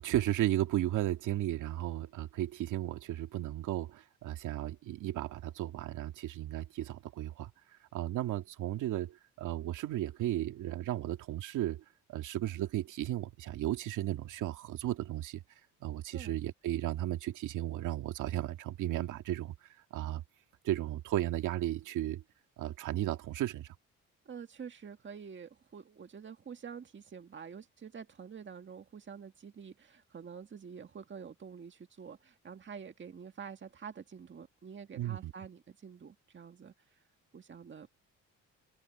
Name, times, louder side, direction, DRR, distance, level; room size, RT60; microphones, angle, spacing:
voice 1, 0.0-7.5 7.9-11.8 12.1-15.4 15.8-19.5 19.9-20.2 20.6-22.2 22.6-23.7 35.0-35.3, right 13 dB, 85° right, 2.1 m, -34 dB
voice 2, 24.3-37.0 37.3-38.0, right 6 dB, 40° right, 1.9 m, -48 dB
cardioid pair, 90°, 30 cm